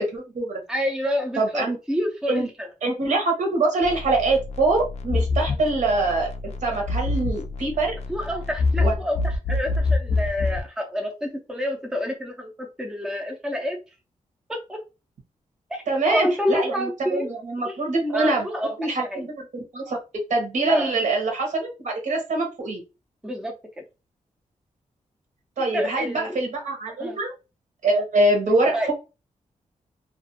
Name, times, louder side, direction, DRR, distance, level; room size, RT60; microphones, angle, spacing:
voice 1, 0.0-0.6 1.4-1.8 2.3-2.5 2.8-8.0 8.8-8.9 15.9-18.5 18.8-19.5 19.7-20.0 20.3-22.8 25.6-27.3 27.8-28.9, right 2 dB, 70° right, 1 dB, 0.9 m, -24 dB
voice 2, 0.7-2.5 5.4-5.6 8.1-13.8 14.5-14.8 15.7-15.8 16.1-17.3 17.6-17.8 18.1-18.7 19.1-19.3 20.7-20.9 23.2-23.5 25.7-26.4 27.0-27.2 28.4-28.9, equal, 5° right, 3 dB, 0.5 m, -28 dB
sound 1, 3.8-10.7, left 3 dB, 55° left, 0.4 m, -26 dB
2.4 x 2.3 x 2.7 m, 0.29 s
wide cardioid pair, 120°, 13 cm